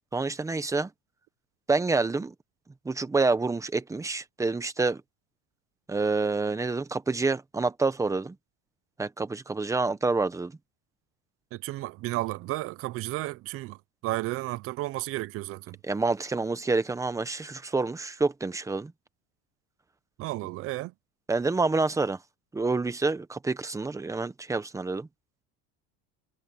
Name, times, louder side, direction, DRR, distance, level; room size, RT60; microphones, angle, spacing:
voice 1, 0.1-0.9 1.7-2.3 2.8-5.0 5.9-8.3 9.0-10.5 15.9-18.9 21.3-22.2 22.5-25.1, right 3 dB, 10° right, 1.1 m, -27 dB
voice 2, 11.5-15.8 20.2-20.9, right 18 dB, 40° right, 0.5 m, -33 dB
cardioid pair, 145°, 34 cm